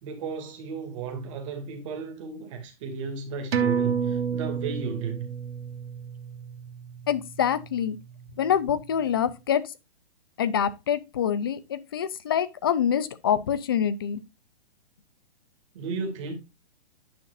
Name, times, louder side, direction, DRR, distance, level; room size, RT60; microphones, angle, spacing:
voice 1, 0.0-5.3 15.7-16.3, right 5 dB, 30° right, 2.2 m, -34 dB
sound 1, 3.5-8.5 8.8-8.9, right 7 dB, 85° right, 1.2 m, -30 dB
voice 2, 7.1-8.0 8.4-9.6 10.4-14.2, left 8 dB, 25° left, 0.4 m, -25 dB
9.4 x 5.6 x 2.5 m
hypercardioid pair, 165°, 30 cm